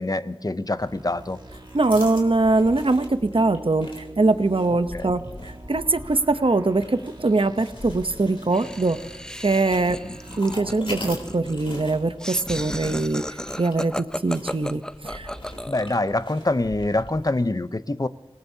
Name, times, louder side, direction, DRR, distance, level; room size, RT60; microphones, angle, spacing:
voice 1, 0.0-1.4 4.9-5.1 10.0-10.2 15.7-18.1, left 2 dB, 40° left, 13 dB, 0.7 m, -25 dB
sound 1, 0.8-12.1, right 2 dB, 50° right, 1.5 m, -44 dB
sound 2, 1.3-17.5, left 1 dB, 65° left, 3.5 m, -41 dB
voice 2, 1.7-9.0 9.4-10.0 10.4-15.3, right 3 dB, 65° right, 10 dB, 0.8 m, -22 dB
Laughter, 8.5-16.1, equal, 5° left, 0.5 m, -35 dB
26.5 x 18.5 x 2.8 m, 1.2 s
wide cardioid pair, 40°, 10 cm